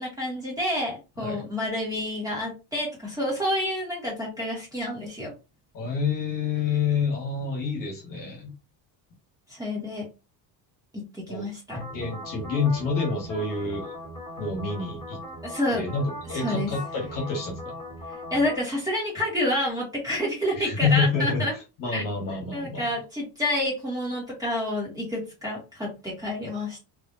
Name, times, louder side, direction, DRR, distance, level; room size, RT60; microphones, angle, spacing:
voice 1, 0.0-5.3 9.5-10.1 10.9-11.9 15.4-15.9 16.3-16.7 18.3-21.6 21.9-22.0 22.5-26.8, left 1 dB, 5° right, -4 dB, 2.1 m, -29 dB
voice 2, 5.7-8.5 11.3-11.5 11.9-13.9 14.4-15.2 15.7-17.8 20.5-22.9, left 5 dB, 40° left, 0 dB, 1.7 m, -28 dB
sound 1, 11.7-18.6, left 1 dB, 10° left, 1.9 m, -39 dB
3.4 x 3.2 x 2.7 m, 0.27 s
cardioid pair, 145°, 48 cm